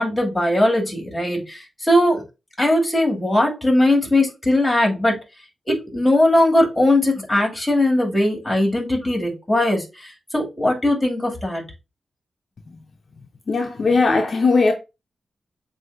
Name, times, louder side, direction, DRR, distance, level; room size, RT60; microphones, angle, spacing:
voice 1, 0.0-2.2 2.6-5.2 5.7-11.6, left 1 dB, 15° left, 2.2 m, -19 dB
voice 2, 13.5-14.7, left 3 dB, 55° left, 0.6 m, -18 dB
7.5 x 2.6 x 2.5 m
wide cardioid pair, 90°, 0 cm